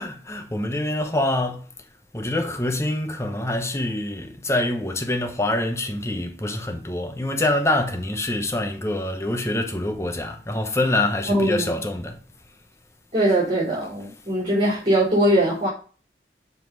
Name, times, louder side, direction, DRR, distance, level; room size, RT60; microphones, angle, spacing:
voice 1, 0.0-1.7 2.1-12.2, left 1 dB, 15° left, 0.9 m, -25 dB
voice 2, 11.3-11.7 13.1-15.7, right 1 dB, 30° right, 3.9 m, -21 dB
7.4 x 4.2 x 5.3 m
head